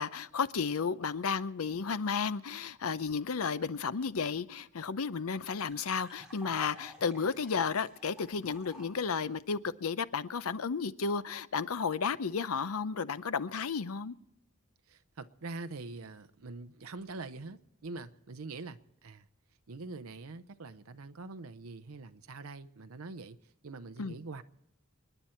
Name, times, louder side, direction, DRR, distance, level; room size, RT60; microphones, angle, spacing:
voice 1, 0.0-14.1 24.0-24.2, left 5 dB, 85° left, 0.7 m, -33 dB
sound 1, 4.3-4.4 4.5-4.6 4.9-9.0, equal, 5° right, 4.7 m, -53 dB
voice 2, 14.9-19.3 19.7-23.4 23.6-24.4, right 3 dB, 85° right, 0.7 m, -44 dB
29.0 x 10.0 x 4.4 m
head